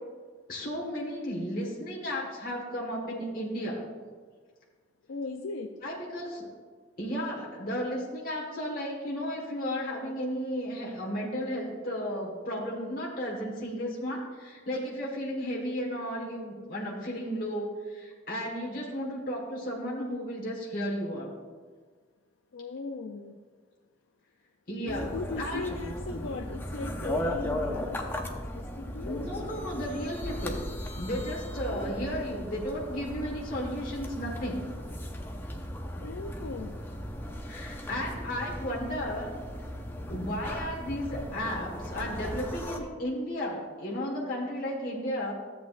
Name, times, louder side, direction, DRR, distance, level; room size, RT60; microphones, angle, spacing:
voice 1, 0.5-3.8 5.8-6.5 7.0-21.3 24.7-25.1 25.4-25.6 29.0-30.7 31.0-34.7 37.4-39.3 40.1-45.3, equal, 45° left, -4 dB, 1.5 m, -34 dB
voice 2, 5.1-5.7 22.5-23.4 25.0-29.4 31.6-32.2 36.0-36.8, left 4 dB, 85° left, 5 dB, 0.5 m, -38 dB
sound 1, 24.9-42.8, equal, 10° left, 0.6 m, -37 dB
13.5 x 8.2 x 2.5 m, 1.5 s
head